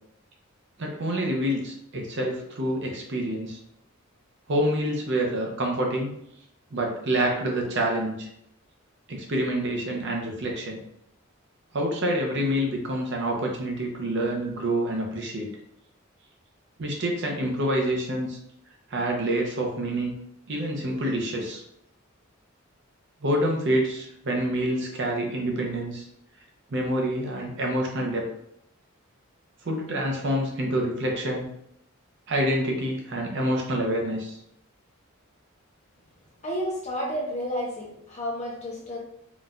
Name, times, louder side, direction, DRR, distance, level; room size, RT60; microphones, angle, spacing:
voice 1, 0.8-3.6 4.5-6.1 6.7-8.3 9.1-10.8 11.7-15.5 16.8-18.4 18.9-20.2 20.5-21.6 23.2-26.0 26.7-28.3 29.6-31.5 32.3-34.4, right 1 dB, 55° right, 0 dB, 0.6 m, -27 dB
voice 2, 36.4-39.0, equal, 35° left, -4 dB, 0.9 m, -31 dB
3.8 x 2.5 x 2.2 m, 0.75 s
head